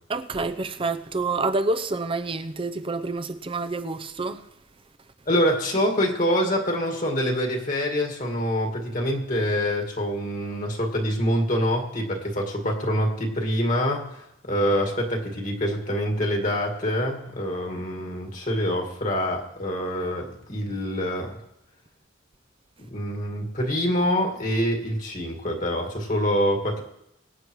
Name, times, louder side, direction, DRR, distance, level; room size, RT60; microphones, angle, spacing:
voice 1, 0.1-4.4, right 3 dB, 25° right, 0.6 m, -28 dB
voice 2, 5.3-21.4 22.8-26.8, equal, 40° left, 1.9 m, -25 dB
23.5 x 8.3 x 3.1 m
head